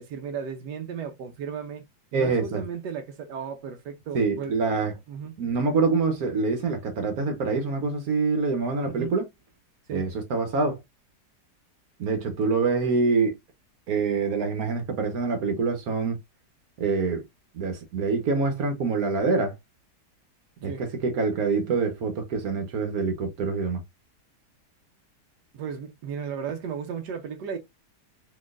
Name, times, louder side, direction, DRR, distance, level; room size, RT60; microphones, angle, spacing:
voice 1, 0.0-1.8 2.1-4.5 5.1-5.3 8.8-9.1 9.9-10.1 20.6-20.8 25.5-27.6, right 7 dB, 90° right, 1.3 m, -35 dB
voice 2, 2.1-2.6 4.1-4.9 5.4-9.3 9.9-10.8 12.0-13.3 13.9-16.2 16.8-17.2 17.5-19.5 20.6-23.8, right 4 dB, 65° right, 1.3 m, -25 dB
3.9 x 3.0 x 2.4 m
omnidirectional pair, 1.7 m